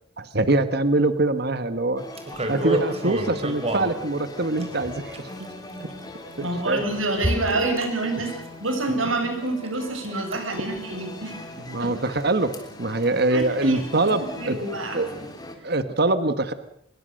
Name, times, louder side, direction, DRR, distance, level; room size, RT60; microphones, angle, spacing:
voice 1, 0.2-2.0 2.5-5.1 5.8-5.9 6.4-6.8 11.7-12.5 12.8-14.6 14.9-15.1 15.6-16.5, right 2 dB, 50° right, 11 dB, 1.5 m, -23 dB
sound 1, 2.0-15.6, left 1 dB, 20° left, 3.5 m, -40 dB
sound 2, 2.2-3.9 4.6-5.4 6.3-6.4 7.2-7.9 8.2-8.5 8.8-8.9 9.3-9.7 9.9-10.4 10.8-10.9, right 1 dB, 30° right, 4.0 m, -27 dB
voice 2, 6.4-8.3 8.6-11.4 11.8-12.0 13.3-13.8 14.0-15.0, right 2 dB, 80° right, 4 dB, 7.3 m, -27 dB
25.0 x 22.0 x 6.6 m, 0.67 s
head